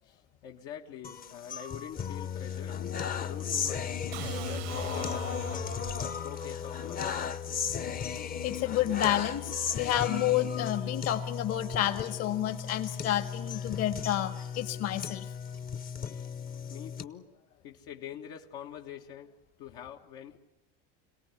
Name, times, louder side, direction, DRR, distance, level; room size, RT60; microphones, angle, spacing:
voice 1, 0.0-2.8 3.2-7.0 16.1-16.3 16.7-20.4, left 10 dB, 75° left, 2 dB, 1.5 m, -46 dB
sound 1, 1.0-17.0, left 7 dB, 30° left, 0.8 m, -35 dB
sound 2, 4.1-6.1, right 15 dB, 80° right, 1.0 m, -40 dB
voice 2, 8.4-15.3, left 12 dB, 55° left, 8 dB, 1.8 m, -30 dB
26.5 x 18.0 x 9.7 m, 0.99 s
cardioid pair, 130°, 30 cm